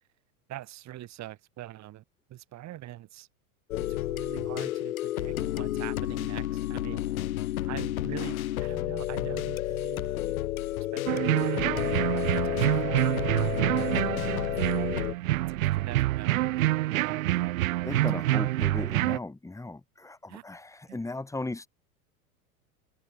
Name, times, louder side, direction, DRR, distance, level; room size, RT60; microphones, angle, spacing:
voice 1, 0.5-2.0 2.3-3.3 3.8-7.1 7.6-10.4 10.9-14.0 14.5-15.0 15.3-16.4 16.9-17.3 17.9-18.2 20.3-20.4 20.9-21.0, right 14 dB, 40° right, 3.1 m, -43 dB
sound 1, 3.7-15.1, left 14 dB, 70° left, 1.4 m, -31 dB
sound 2, 11.1-19.2, right 16 dB, 65° right, 1.7 m, -27 dB
voice 2, 17.8-21.7, left 2 dB, 5° left, 1.8 m, -37 dB
figure-of-eight pair, 85°, 44 cm